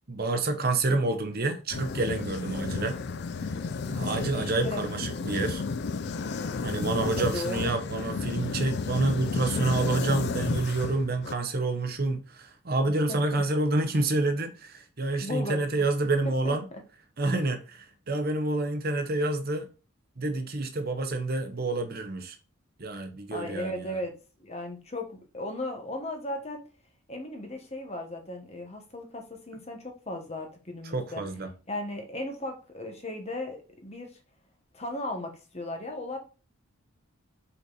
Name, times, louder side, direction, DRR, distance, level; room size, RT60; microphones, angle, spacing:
voice 1, 0.1-3.0 3.9-5.6 6.6-16.6 17.2-19.7 20.2-22.4 22.8-23.9 30.9-31.5, right 2 dB, 45° right, 0.8 m, -28 dB
sound 1, 1.7-11.4, left 4 dB, 50° left, 0.4 m, -32 dB
voice 2, 4.3-4.9 7.2-7.8 13.1-13.4 15.2-15.9 16.4-16.8 23.3-26.6 27.1-31.2 31.7-34.1 34.7-36.2, left 1 dB, 30° left, 1.2 m, -36 dB
5.6 x 4.2 x 4.0 m
head